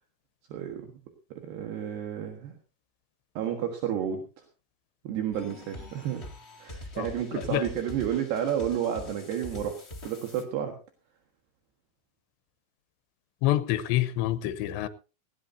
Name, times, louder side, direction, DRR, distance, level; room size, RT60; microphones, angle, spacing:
voice 1, 0.5-0.9 1.3-2.5 3.3-4.2 5.0-6.2 6.6-10.7, right 9 dB, 75° right, 3.6 m, -31 dB
sound 1, 5.3-10.4, left 1 dB, 60° left, 0.6 m, -44 dB
voice 2, 7.0-7.6 13.4-14.9, left 14 dB, 85° left, 3.1 m, -27 dB
18.5 x 16.5 x 2.7 m
omnidirectional pair, 4.9 m